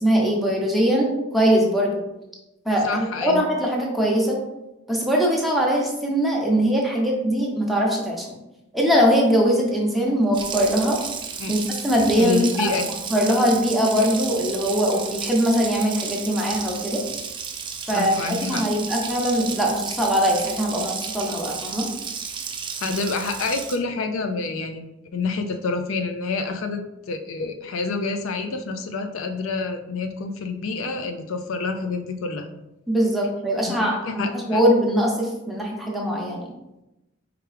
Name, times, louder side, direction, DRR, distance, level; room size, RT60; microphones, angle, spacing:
voice 1, 0.0-1.9 2.6-4.4 4.9-8.3 8.7-11.0 11.5-12.7 13.1-17.0 17.9-18.1 18.4-21.9 32.9-36.5, equal, ahead, -2 dB, 0.8 m, -21 dB
voice 2, 2.8-3.4 11.4-11.5 12.2-12.8 17.9-18.6 22.8-32.5 33.7-34.6, left 4 dB, 70° left, 6 dB, 0.4 m, -28 dB
Water tap faucet, 10.3-23.8, right 6 dB, 25° right, 0.3 m, -33 dB
4.5 x 3.6 x 3.3 m, 0.94 s
head